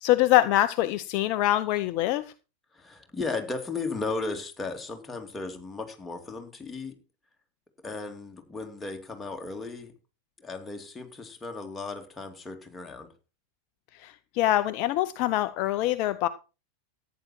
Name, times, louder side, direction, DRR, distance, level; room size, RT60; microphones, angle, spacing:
voice 1, 0.0-2.3 14.0-16.3, left 14 dB, 45° left, 12 dB, 0.7 m, -24 dB
voice 2, 2.7-6.9 7.8-9.9 10.4-13.1, left 3 dB, 10° left, 2 dB, 2.7 m, -35 dB
14.0 x 9.4 x 4.5 m, 0.32 s
figure-of-eight pair, 90°, 0 cm